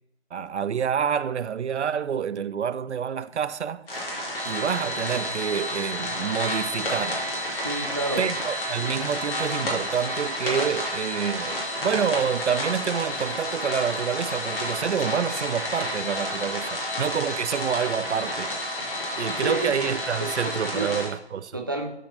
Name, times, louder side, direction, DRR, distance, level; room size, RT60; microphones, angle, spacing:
voice 1, 0.3-3.9 4.5-7.2 8.2-18.7 19.2-21.5, right 7 dB, 85° right, 0.5 m, -28 dB
sound 1, 3.9-21.1, left 1 dB, 55° left, 2.6 m, -30 dB
voice 2, 7.6-8.3 19.3-19.7 20.2-20.9 21.5-21.9, right 2 dB, 20° right, 0.4 m, -30 dB
11.5 x 4.0 x 2.9 m
figure-of-eight pair, 145°, 33 cm